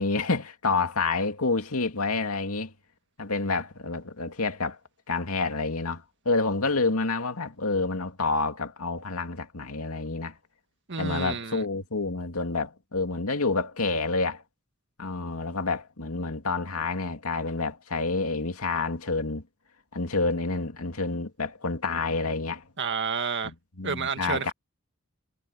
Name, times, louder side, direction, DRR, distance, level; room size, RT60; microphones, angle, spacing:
voice 1, 0.0-2.7 3.2-4.8 5.1-10.3 11.0-14.4 15.0-19.4 19.9-22.6 23.8-24.5, left 3 dB, 85° left, 2.4 m, -28 dB
voice 2, 10.9-11.6 22.8-23.5 23.8-24.5, right 5 dB, 55° right, 1.8 m, -30 dB
head